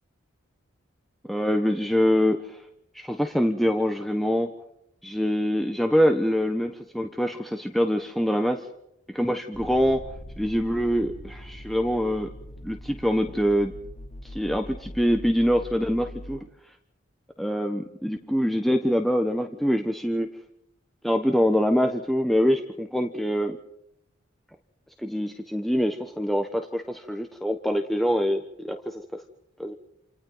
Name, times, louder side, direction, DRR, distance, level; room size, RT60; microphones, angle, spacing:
voice 1, 1.3-2.6 2.9-4.5 5.0-8.7 9.1-10.0 10.4-12.3 12.6-13.7 14.2-16.5 17.4-20.3 21.0-23.6 25.0-29.2 29.6-29.7, equal, ahead, 5 dB, 1.2 m, -24 dB
sound 1, 9.5-16.4, equal, 35° left, 3.0 m, -42 dB
29.0 x 28.5 x 4.0 m, 0.78 s
head